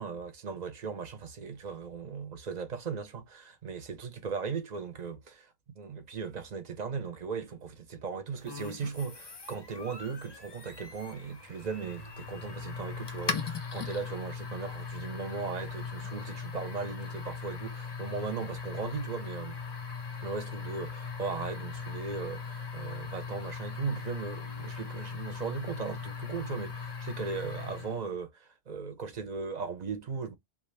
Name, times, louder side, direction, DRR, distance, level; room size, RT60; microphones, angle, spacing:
voice 1, 0.0-19.6 20.2-30.3, right 5 dB, 50° right, 0.7 m, -38 dB
sound 1, 8.4-28.0, left 5 dB, 35° left, 0.4 m, -39 dB
2.4 x 2.2 x 3.1 m
omnidirectional pair, 1.0 m